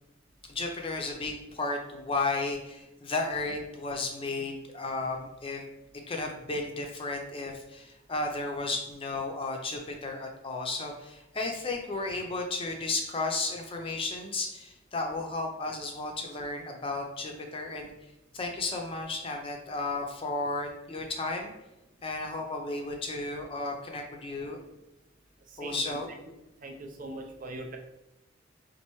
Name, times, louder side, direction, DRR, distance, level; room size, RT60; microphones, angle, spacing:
voice 1, 0.5-5.6 6.1-17.9 18.3-21.5 22.0-24.6 25.6-26.1, left 3 dB, 30° left, 3 dB, 0.5 m, -33 dB
voice 2, 25.5-26.0 26.6-27.8, right 2 dB, 45° right, 2 dB, 0.5 m, -41 dB
4.3 x 2.5 x 3.0 m, 0.98 s
head